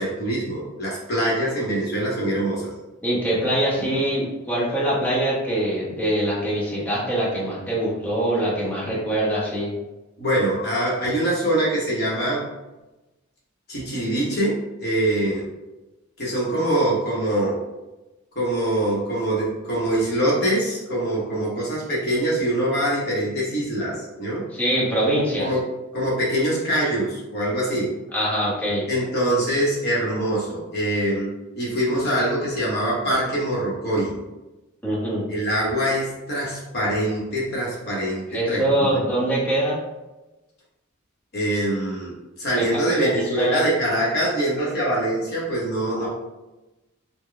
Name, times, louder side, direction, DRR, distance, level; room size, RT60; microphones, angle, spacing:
voice 1, 0.0-2.7 10.2-12.4 13.7-15.5 16.2-17.6 18.3-24.5 25.4-25.6 25.9-27.9 28.9-34.2 35.3-39.0 41.3-46.1, right 1 dB, 50° left, -5 dB, 0.9 m, -24 dB
voice 2, 3.0-9.7 24.5-25.5 28.1-28.9 34.8-35.3 38.3-39.8 42.6-43.6 46.0-46.1, right 1 dB, 10° left, -8 dB, 1.0 m, -23 dB
3.8 x 2.2 x 3.3 m, 1.0 s
head